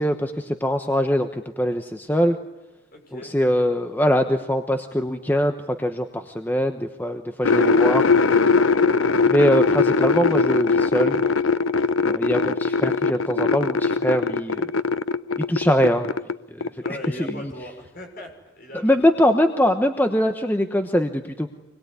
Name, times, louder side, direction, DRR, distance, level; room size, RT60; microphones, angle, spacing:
voice 1, 0.0-2.4 3.1-8.1 9.3-11.2 12.0-14.7 15.5-16.1 16.5-16.7 17.2-17.5 18.8-21.5, equal, 10° left, 6 dB, 1.1 m, -22 dB
voice 2, 2.9-3.3 16.8-19.1, left 1 dB, 45° left, 3 dB, 6.2 m, -39 dB
sound 1, 7.4-16.4 16.6-17.3, left 4 dB, 85° left, 0.8 m, -20 dB
26.0 x 21.5 x 9.6 m, 1.1 s
head